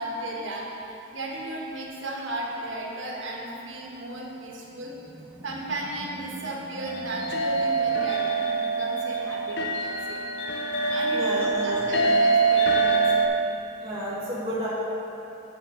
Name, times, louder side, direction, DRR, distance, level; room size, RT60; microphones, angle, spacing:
voice 1, 0.0-4.9 5.4-10.2 10.9-13.3, right 1 dB, 85° right, -2 dB, 1.2 m, -35 dB
Animal, 4.2-8.7, equal, 15° right, 0.5 m, -46 dB
sound 1, 6.9-13.3, right 3 dB, 60° left, 0.6 m, -24 dB
voice 2, 11.1-12.2 13.8-14.7, equal, 30° right, -10 dB, 1.2 m, -31 dB
7.0 x 5.8 x 5.2 m, 3.0 s
head